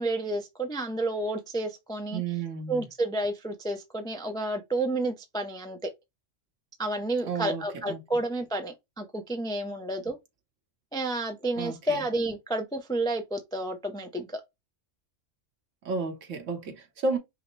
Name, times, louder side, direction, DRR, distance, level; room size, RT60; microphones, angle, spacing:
voice 1, 0.0-2.2 2.7-5.9 6.8-10.2 10.9-14.4, right 2 dB, 5° left, 0.4 m, -30 dB
voice 2, 2.1-2.8 7.2-8.0 11.6-11.7 15.8-17.2, right 4 dB, 80° right, 1.3 m, -32 dB
5.5 x 2.0 x 3.1 m
omnidirectional pair, 1.3 m